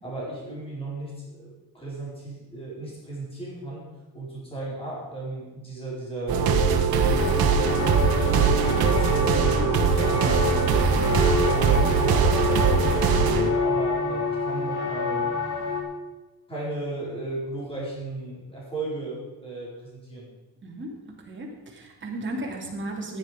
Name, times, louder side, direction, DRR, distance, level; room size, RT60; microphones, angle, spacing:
voice 1, 0.0-3.9 4.1-6.4 6.9-10.5 10.9-15.3 16.5-20.3, right 2 dB, 15° left, -6 dB, 4.9 m, -36 dB
sound 1, 6.3-13.5, right 5 dB, 65° right, 1.4 m, -21 dB
sound 2, 7.2-15.8, left 3 dB, 50° left, 3.0 m, -28 dB
voice 2, 20.6-23.2, right 1 dB, 30° right, -1 dB, 2.9 m, -35 dB
15.0 x 10.5 x 5.3 m, 1.1 s
cardioid pair, 175°, 39 cm